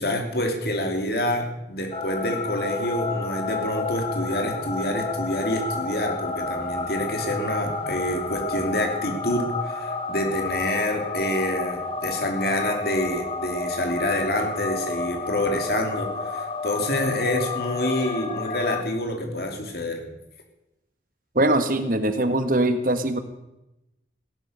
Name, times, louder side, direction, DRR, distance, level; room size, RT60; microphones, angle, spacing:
voice 1, 0.0-20.0, left 1 dB, 55° left, 4 dB, 3.0 m, -27 dB
sound 1, 1.9-18.8, left 3 dB, 30° left, 1.4 m, -30 dB
voice 2, 21.3-23.2, right 1 dB, 45° right, 9 dB, 1.3 m, -22 dB
17.0 x 12.0 x 6.7 m, 0.91 s
head